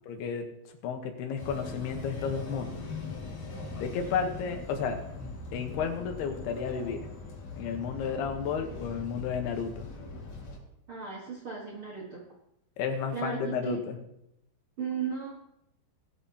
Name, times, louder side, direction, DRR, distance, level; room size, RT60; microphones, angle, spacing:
voice 1, 0.1-0.5 0.8-2.9 3.8-5.0 5.5-7.0 7.5-9.9 12.8-14.0, left 6 dB, 85° left, 5 dB, 3.1 m, -32 dB
sound 1, 1.4-10.6, left 3 dB, 50° left, 3.1 m, -41 dB
voice 2, 10.9-12.2 13.1-13.8 14.8-15.3, right 6 dB, 55° right, -3 dB, 1.5 m, -35 dB
18.5 x 8.4 x 2.8 m, 0.80 s
omnidirectional pair, 4.5 m